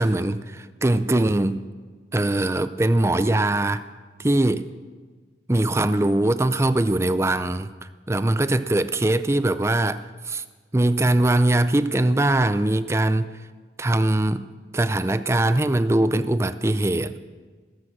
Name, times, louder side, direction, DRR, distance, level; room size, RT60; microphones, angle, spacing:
voice 1, 0.0-1.7 2.1-3.8 4.2-4.7 5.5-7.7 8.1-10.4 10.7-13.3 13.8-14.5 14.7-17.2, right 1 dB, 15° right, 12 dB, 0.5 m, -21 dB
15.5 x 14.0 x 6.0 m, 1.4 s
head